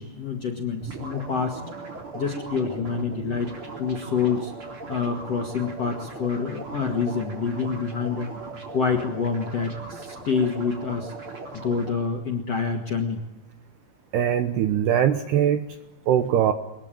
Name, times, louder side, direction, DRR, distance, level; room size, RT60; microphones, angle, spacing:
voice 1, 0.0-1.6 2.1-8.3 8.7-11.1 11.5-13.2, left 5 dB, 50° left, 3 dB, 2.0 m, -27 dB
sound 1, 0.8-11.9, right 3 dB, 30° right, 3.8 m, -38 dB
voice 2, 14.1-15.7 16.1-16.5, right 9 dB, 75° right, 9 dB, 2.5 m, -21 dB
23.5 x 20.5 x 9.1 m, 0.95 s
omnidirectional pair, 5.8 m